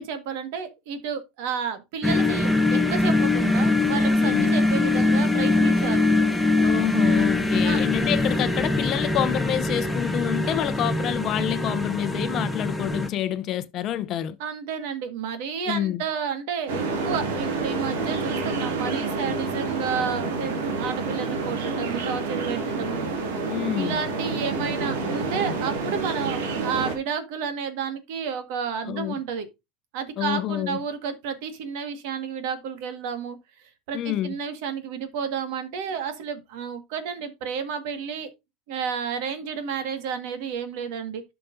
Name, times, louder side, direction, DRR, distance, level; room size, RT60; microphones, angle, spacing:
voice 1, 0.0-6.1 7.6-7.8 10.4-10.6 14.4-23.1 23.7-29.5 29.9-33.4 33.9-38.3 38.7-41.2, right 6 dB, 65° right, 1.6 m, -31 dB
sound 1, 2.0-13.1, left 2 dB, ahead, 0.8 m, -22 dB
voice 2, 4.2-4.6 6.6-14.4 15.7-16.0 23.5-24.0 28.8-29.2 30.2-30.8 33.9-34.4, left 12 dB, 35° left, 0.7 m, -28 dB
sound 2, 16.7-27.0, right 3 dB, 85° right, 2.3 m, -28 dB
11.5 x 5.9 x 2.6 m
supercardioid pair, 150°, 0 cm